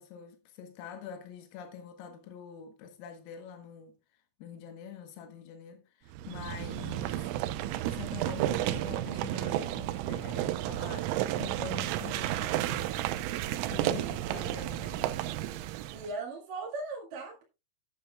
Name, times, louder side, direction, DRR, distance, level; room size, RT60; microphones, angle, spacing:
voice 1, 0.0-4.0 4.4-7.3 7.8-13.1 13.7-15.3, left 8 dB, 85° left, 4.0 m, -45 dB
sound 1, 6.1-16.1, right 13 dB, 80° right, 3.2 m, -32 dB
voice 2, 15.9-17.4, right 3 dB, 55° right, 3.0 m, -39 dB
13.0 x 9.9 x 2.3 m
omnidirectional pair, 5.8 m